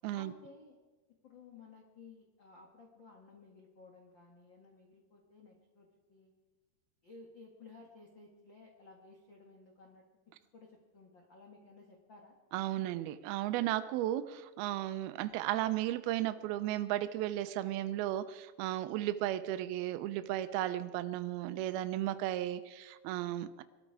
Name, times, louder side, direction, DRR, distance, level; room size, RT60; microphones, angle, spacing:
voice 1, 0.1-0.8 1.1-6.3 7.0-12.4 20.3-20.4, left 3 dB, 60° left, 1 dB, 1.2 m, -56 dB
voice 2, 12.5-23.6, right 13 dB, 80° right, 12 dB, 2.3 m, -35 dB
22.5 x 13.0 x 4.8 m, 1.3 s
omnidirectional pair, 5.1 m